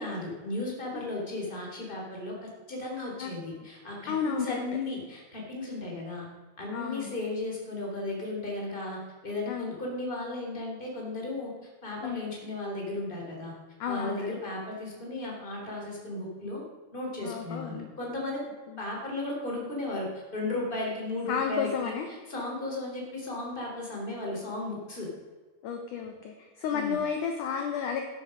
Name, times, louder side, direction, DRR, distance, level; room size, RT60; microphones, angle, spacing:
voice 1, 0.0-6.3 6.6-11.5 11.8-13.5 13.9-16.6 16.9-18.4 18.8-25.1 26.7-27.0, left 2 dB, 15° left, -1 dB, 3.2 m, -35 dB
voice 2, 4.1-4.6 6.7-7.2 9.5-9.7 12.0-12.2 13.8-14.3 17.2-17.9 18.7-18.9 21.3-22.1 25.6-28.0, left 7 dB, 65° left, 4 dB, 2.1 m, -32 dB
13.5 x 10.5 x 5.2 m, 1.4 s
omnidirectional pair, 4.7 m